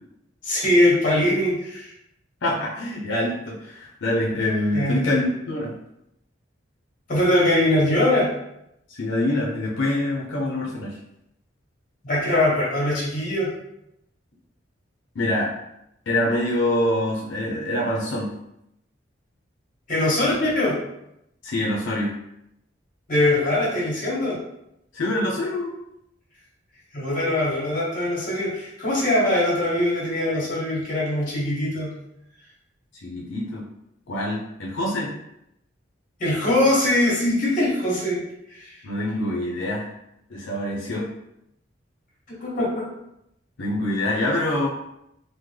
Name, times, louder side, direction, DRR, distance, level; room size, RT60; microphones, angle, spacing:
voice 1, 0.4-1.9 4.7-5.0 7.1-8.3 12.0-13.5 19.9-20.8 23.1-24.4 26.9-31.9 36.2-38.2 38.5-38.7 42.3-42.9, left 1 dB, 45° left, -4 dB, 1.3 m, -22 dB
voice 2, 2.4-5.8 8.9-11.0 15.1-15.5 16.1-18.3 21.4-22.1 24.9-25.7 33.0-33.6 34.1-35.1 38.8-39.9 40.3-41.1 43.6-44.7, left 1 dB, 85° left, -3 dB, 0.6 m, -25 dB
3.6 x 2.1 x 3.2 m, 0.81 s
head